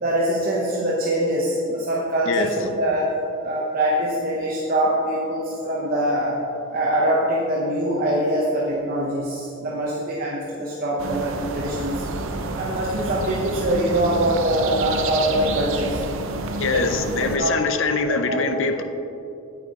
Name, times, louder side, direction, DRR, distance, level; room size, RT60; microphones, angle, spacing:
voice 1, 0.0-3.1 3.4-6.4 6.7-12.0 12.5-16.0 16.7-17.0 17.2-17.5 18.3-18.4, right 1 dB, 40° right, -5 dB, 1.0 m, -23 dB
sound 1, 11.0-17.4, right 3 dB, 60° right, 0.6 m, -29 dB
voice 2, 16.4-18.8, left 4 dB, 60° left, 6 dB, 0.6 m, -24 dB
9.2 x 8.5 x 3.7 m, 2.8 s
head